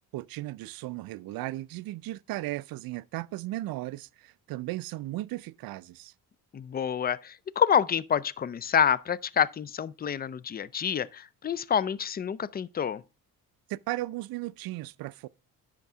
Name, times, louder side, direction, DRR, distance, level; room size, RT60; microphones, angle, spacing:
voice 1, 0.1-6.1 13.7-15.3, right 17 dB, 60° right, 0.5 m, -36 dB
voice 2, 6.5-13.0, left 8 dB, 25° left, 0.4 m, -27 dB
10.5 x 3.7 x 6.0 m
cardioid pair, 85°, 40 cm